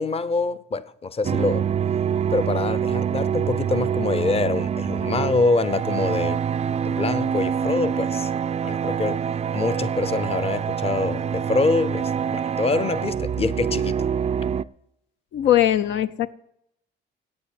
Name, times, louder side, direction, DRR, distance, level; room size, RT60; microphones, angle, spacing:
voice 1, 0.0-1.7 2.3-6.4 6.9-8.3 8.6-9.2 9.5-14.1, left 3 dB, 30° left, 0.7 m, -25 dB
sound 1, 1.2-14.6, right 8 dB, 35° right, 0.4 m, -25 dB
voice 2, 15.3-16.3, left 12 dB, 70° left, 0.5 m, -20 dB
8.6 x 8.5 x 8.2 m
cardioid pair, 90°, 20 cm